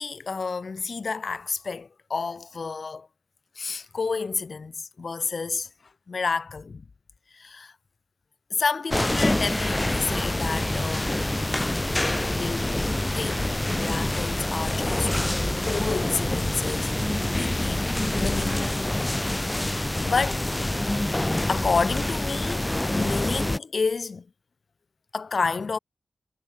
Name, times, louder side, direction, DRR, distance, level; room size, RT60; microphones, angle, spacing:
voice 1, 0.0-3.1 3.6-5.7 6.1-6.8 7.3-7.7 8.5-11.2 12.3-12.8 13.1-15.1 15.6-16.9 17.3-18.8 20.0-20.4 21.5-22.7 22.9-24.3 25.1-25.8, left 4 dB, 60° left, 0.6 m, -30 dB
sound 1, 8.9-23.6, left 1 dB, 15° left, 0.4 m, -26 dB
cardioid pair, 65°, 0 cm